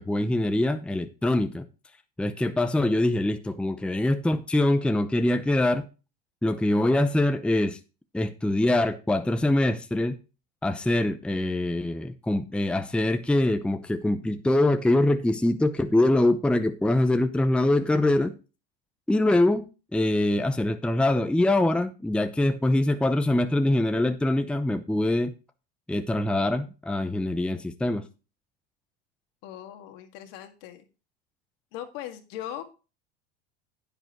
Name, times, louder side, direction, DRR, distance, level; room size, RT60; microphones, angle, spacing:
voice 1, 0.0-1.7 2.2-5.9 6.4-7.8 8.1-10.1 10.6-18.3 19.1-25.3 25.9-28.1, left 1 dB, 5° left, 0.8 m, -24 dB
voice 2, 29.4-30.9 31.7-32.6, left 11 dB, 65° left, 2.0 m, -39 dB
10.0 x 9.0 x 3.0 m
hypercardioid pair, 95°, 31 cm